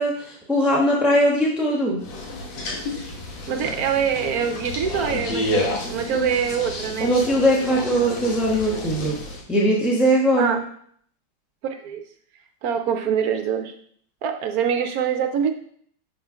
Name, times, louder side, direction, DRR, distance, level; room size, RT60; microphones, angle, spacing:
voice 1, 0.0-2.0 7.0-9.2 9.5-10.6, equal, ahead, -4 dB, 0.7 m, -20 dB
sound 1, 2.0-9.4, left 2 dB, 80° left, 2.0 m, -30 dB
voice 2, 3.5-7.1 10.4-10.6 11.7-12.0 12.6-13.7 14.2-15.5, right 7 dB, 70° right, 6 dB, 0.9 m, -24 dB
6.8 x 4.3 x 4.9 m, 0.62 s
omnidirectional pair, 2.1 m